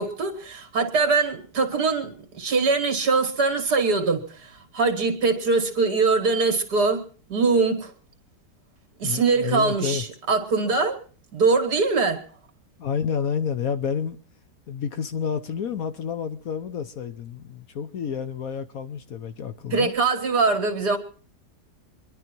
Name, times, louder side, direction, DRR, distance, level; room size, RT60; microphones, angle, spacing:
voice 1, 0.0-7.0 7.3-7.9 9.0-11.0 11.3-12.2 19.7-21.0, right 4 dB, 65° right, 2.6 m, -22 dB
voice 2, 9.0-10.0 12.8-14.2 14.7-19.9, left 7 dB, 60° left, 1.3 m, -29 dB
25.0 x 11.0 x 4.5 m
omnidirectional pair, 1.8 m